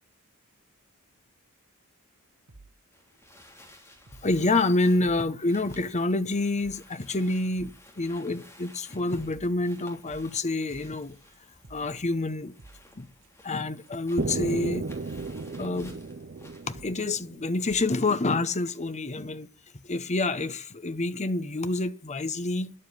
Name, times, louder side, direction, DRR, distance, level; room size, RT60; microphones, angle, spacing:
sound 1, 2.5-2.7 3.1-3.4 4.1-5.3 5.6-6.0 6.3-6.4 6.6-7.0 7.2-7.3 7.5-7.9 8.2-8.5 8.8-13.6 13.9-14.0 14.2-16.0 16.7-17.1 17.6-17.9 18.3-18.4 18.6-18.7, right 3 dB, 60° right, 1.6 m, -53 dB
sound 2, 2.9-16.7, left 1 dB, 15° left, 3.2 m, -55 dB
voice 1, 4.2-11.2 11.7-12.5 13.0-13.1 13.4-14.9 15.6-16.0 16.7-19.5 19.8-22.7, left 2 dB, 30° left, 1.0 m, -27 dB
sound 3, 14.2-18.1, right 3 dB, 45° right, 0.6 m, -34 dB
11.0 x 7.6 x 10.0 m
head